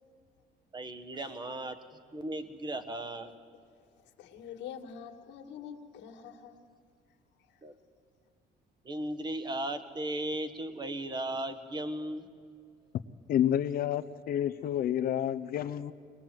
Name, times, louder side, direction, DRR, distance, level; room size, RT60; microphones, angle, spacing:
voice 1, 0.7-1.8 2.1-3.3 7.6-7.7 8.8-12.3, right 1 dB, 25° right, 10 dB, 1.3 m, -36 dB
voice 2, 4.0-6.7 7.5-7.6, left 8 dB, 80° left, 3 dB, 2.0 m, -46 dB
voice 3, 13.3-15.9, left 10 dB, 55° left, 10 dB, 0.7 m, -29 dB
23.0 x 20.5 x 7.6 m, 2.3 s
cardioid pair, 145°, 18 cm